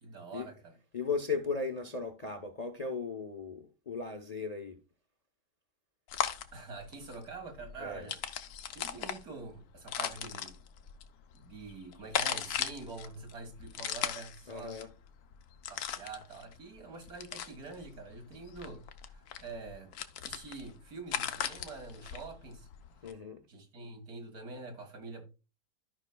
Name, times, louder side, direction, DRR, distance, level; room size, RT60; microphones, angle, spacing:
voice 1, 0.0-0.7 6.5-8.2 8.7-10.6 11.3-14.8 15.7-19.9 20.2-22.7 23.5-25.2, right 3 dB, 65° right, 2.1 m, -46 dB
voice 2, 0.9-4.8 7.8-8.1 14.5-14.9 23.0-23.4, left 4 dB, 35° left, 0.7 m, -36 dB
sound 1, 6.1-23.1, left 9 dB, 70° left, 1.2 m, -39 dB
14.0 x 5.4 x 2.2 m
omnidirectional pair, 1.7 m